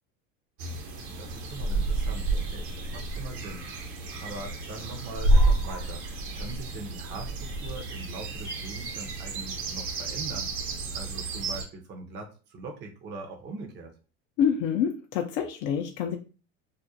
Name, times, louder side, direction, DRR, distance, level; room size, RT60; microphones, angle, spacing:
sound 1, 0.6-11.6, right 2 dB, 70° right, 0.9 m, -29 dB
voice 1, 1.0-3.7 4.2-6.0 6.3-10.5 10.9-13.9, right 3 dB, 30° right, 3 dB, 0.5 m, -42 dB
voice 2, 14.4-16.2, left 8 dB, 55° left, 3 dB, 0.5 m, -27 dB
2.4 x 2.1 x 2.7 m, 0.34 s
supercardioid pair, 100°, 38 cm